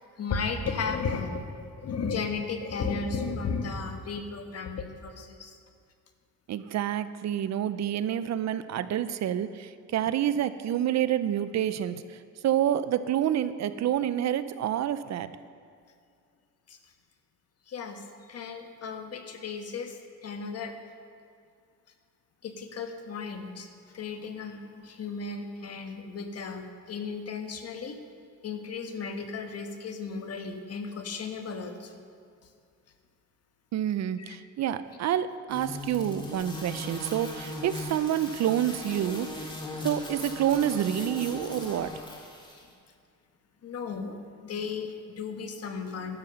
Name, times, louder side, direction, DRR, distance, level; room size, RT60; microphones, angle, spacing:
voice 1, 0.2-5.5 16.7-16.8 17.7-20.7 22.4-23.7 23.9-28.0 28.4-32.0 34.3-34.4 43.6-46.2, left 5 dB, 55° left, 6 dB, 1.3 m, -35 dB
voice 2, 6.5-12.0 12.4-15.3 33.7-42.0, right 10 dB, 60° right, 13 dB, 0.6 m, -28 dB
sound 1, 35.5-42.6, left 2 dB, 15° left, 2.1 m, -39 dB
12.0 x 7.3 x 6.7 m, 2.3 s
cardioid pair, 90°, 30 cm